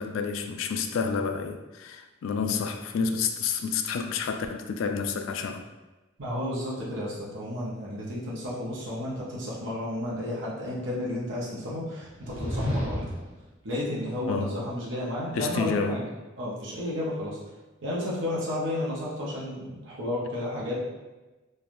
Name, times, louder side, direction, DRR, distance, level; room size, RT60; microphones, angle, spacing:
voice 1, 0.0-5.6 14.3-14.6 15.3-16.0, left 5 dB, 85° left, 7 dB, 0.3 m, -29 dB
voice 2, 6.2-13.0 13.6-16.0 16.4-17.4 17.8-20.9, left 1 dB, 65° right, -6 dB, 0.8 m, -32 dB
sound 1, 12.0-13.4, left 1 dB, 10° right, 0.8 m, -31 dB
3.1 x 2.3 x 2.5 m, 1.1 s
head